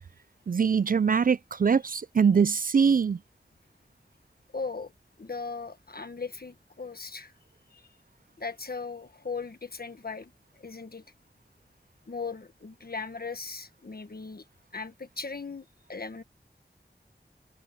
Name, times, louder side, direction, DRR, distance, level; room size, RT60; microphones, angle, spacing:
voice 1, 0.5-3.2, right 6 dB, 55° right, 0.4 m, -23 dB
voice 2, 4.5-4.9 5.2-7.3 7.7-7.8 8.4-10.3 10.6-11.0 12.1-14.4 14.7-15.6 15.9-16.2, left 4 dB, 60° left, 1.4 m, -38 dB
wide cardioid pair, 55°, 18 cm